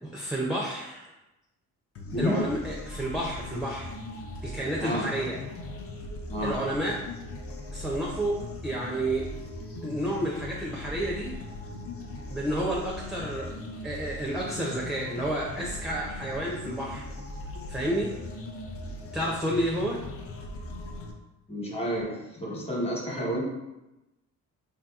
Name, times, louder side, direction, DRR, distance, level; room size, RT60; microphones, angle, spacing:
voice 1, 0.0-1.1 2.2-3.9 4.4-5.4 6.4-7.0 7.7-8.4 8.6-9.3 9.8-11.3 12.3-13.5 13.8-17.0 17.7-18.1 19.1-20.0, right 1 dB, ahead, -3 dB, 0.4 m, -30 dB
sound 1, 1.9-21.1, left 2 dB, 50° left, 0.6 m, -39 dB
voice 2, 2.1-2.4 4.8-5.1 6.3-6.6 21.5-23.4, equal, 20° left, -3 dB, 1.1 m, -30 dB
3.6 x 2.7 x 2.3 m, 0.98 s
cardioid pair, 90°, 30 cm